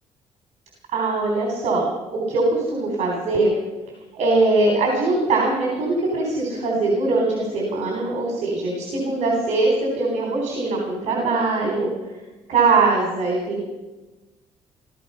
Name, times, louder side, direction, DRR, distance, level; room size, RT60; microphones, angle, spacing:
voice 1, 0.9-1.8 2.1-3.5 4.1-11.9 12.5-13.6, right 3 dB, 70° right, 0 dB, 3.8 m, -21 dB
17.0 x 14.5 x 5.6 m, 1.1 s
cardioid pair, 135°, 12 cm